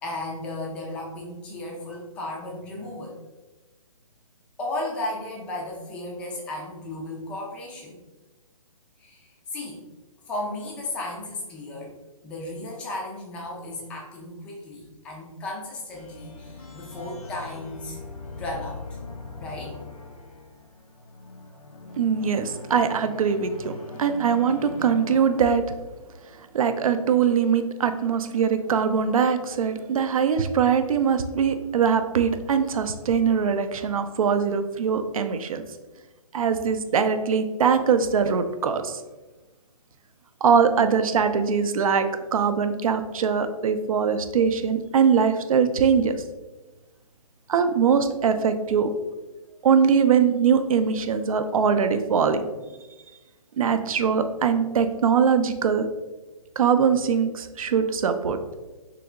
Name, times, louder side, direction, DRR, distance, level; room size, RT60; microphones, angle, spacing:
voice 1, 0.0-3.2 4.6-8.0 9.0-9.8 10.3-11.9 12.2-18.0 18.3-19.0 19.4-19.8, left 2 dB, 5° left, -2 dB, 0.3 m, -35 dB
sound 1, 15.9-26.0, left 3 dB, 90° left, 1.0 m, -41 dB
voice 2, 22.0-23.7 24.0-25.6 26.5-35.6 36.3-39.0 40.4-46.2 47.5-48.9 49.6-52.5 53.6-55.9 56.6-58.4, right 6 dB, 70° right, 9 dB, 0.5 m, -22 dB
3.3 x 2.9 x 3.6 m, 1.2 s
hypercardioid pair, 155°, 18 cm